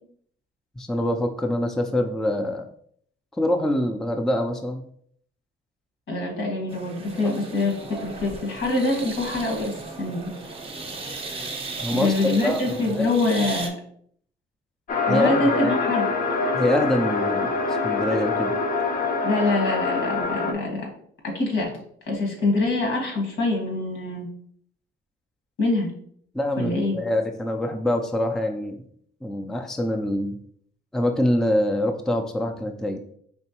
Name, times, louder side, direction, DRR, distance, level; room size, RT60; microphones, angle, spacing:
voice 1, 0.8-2.7 3.4-4.8 7.2-7.4 11.8-12.1 12.4-13.1 15.1-15.7 16.5-18.5 26.3-28.8 29.2-30.4 30.9-33.0, left 1 dB, ahead, 4 dB, 0.4 m, -25 dB
voice 2, 6.1-10.3 11.9-13.8 15.1-16.1 19.2-20.9 21.2-21.7 22.1-24.3 25.6-25.9 26.5-27.0, left 2 dB, 75° left, 1 dB, 1.6 m, -25 dB
sound 1, 6.7-13.7, right 3 dB, 30° right, 0.8 m, -36 dB
sound 2, 14.9-20.5, left 3 dB, 45° left, 0.6 m, -25 dB
4.5 x 3.2 x 2.9 m, 0.62 s
cardioid pair, 90°, 20 cm